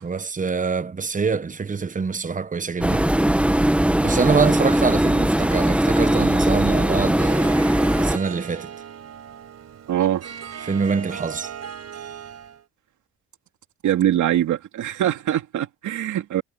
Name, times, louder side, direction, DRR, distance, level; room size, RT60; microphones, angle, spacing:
voice 1, 0.0-3.1 4.0-7.6 8.0-8.7 10.6-11.5, right 5 dB, 25° right, 1.1 m, -25 dB
sound 1, 2.8-8.2, right 1 dB, 5° right, 1.4 m, -19 dB
Harp, 7.2-12.6, right 8 dB, 60° right, 4.4 m, -37 dB
voice 2, 9.9-10.2 13.8-16.4, right 11 dB, 75° right, 2.7 m, -22 dB
cardioid pair, 90°, 30 cm